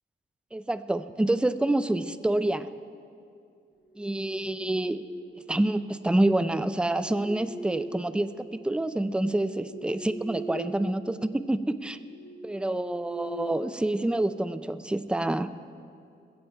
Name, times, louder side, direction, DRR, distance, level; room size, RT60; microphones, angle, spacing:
voice 1, 0.5-2.7 4.0-5.0 5.5-12.0 12.4-15.5, right 1 dB, 5° right, 12 dB, 0.3 m, -27 dB
sound 1, 3.9-5.4 6.4-8.5 9.0-10.9 11.2-11.4 11.9-14.3, right 2 dB, 80° left, 3.5 m, -41 dB
16.0 x 15.0 x 4.5 m, 2.4 s
wide cardioid pair, 160°, 20 cm